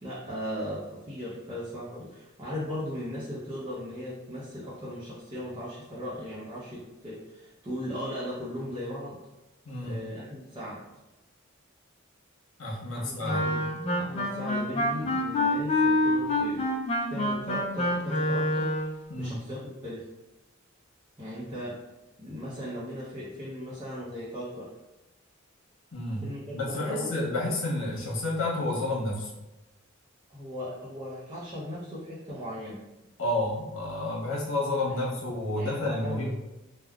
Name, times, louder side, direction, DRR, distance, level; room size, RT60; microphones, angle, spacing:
voice 1, 0.0-9.2 9.8-10.8 12.9-13.6 14.0-16.7 17.1-18.7 19.2-20.1 21.2-21.8 22.2-24.7 26.2-27.1 30.3-32.8 34.9-35.1 35.5-36.3, equal, 25° right, -8 dB, 0.6 m, -37 dB
voice 2, 9.6-10.0 12.6-13.5 19.1-19.4 25.9-26.2 26.5-29.3 33.2-36.3, left 2 dB, 85° left, -4 dB, 0.9 m, -30 dB
Wind instrument woodwind instrument, 13.2-19.0, left 1 dB, 30° left, 0.3 m, -27 dB
3.4 x 2.1 x 2.3 m, 1.0 s
head